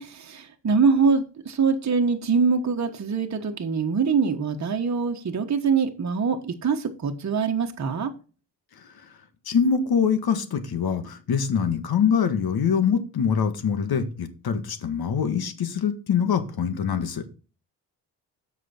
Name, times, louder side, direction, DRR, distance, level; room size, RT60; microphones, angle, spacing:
voice 1, 0.0-8.1, right 5 dB, 40° right, 4 dB, 1.4 m, -24 dB
voice 2, 9.4-17.2, left 7 dB, 60° left, 9 dB, 1.7 m, -24 dB
7.7 x 6.2 x 4.4 m, 0.35 s
cardioid pair, 65°, 41 cm